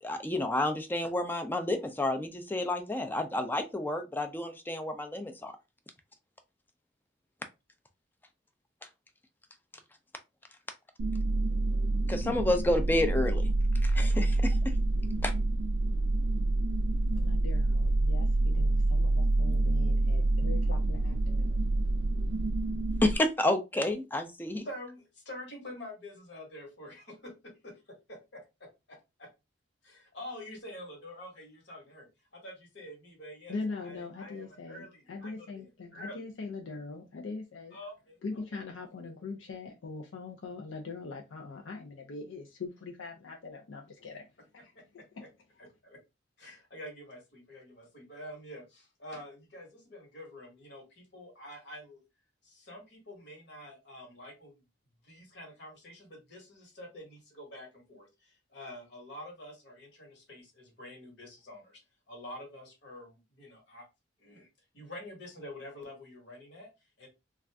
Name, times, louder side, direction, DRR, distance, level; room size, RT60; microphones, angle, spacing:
voice 1, 0.0-5.5 12.1-13.5 13.8-14.7 15.2-15.3 23.0-24.6, left 1 dB, 10° left, 0.3 m, -30 dB
sound 1, 11.0-23.2, right 2 dB, 75° right, 0.4 m, -27 dB
voice 2, 17.1-21.6 33.5-37.8 38.2-44.3 44.5-44.7, left 3 dB, 85° left, 0.5 m, -41 dB
voice 3, 24.6-29.3 29.8-32.1 32.3-36.2 37.7-38.6 44.7-45.1 45.6-46.0 46.4-52.0 52.4-54.7 55.0-61.8 62.1-63.9 64.2-64.5 64.7-67.1, left 1 dB, 60° left, 1.2 m, -47 dB
2.5 x 2.3 x 3.3 m
head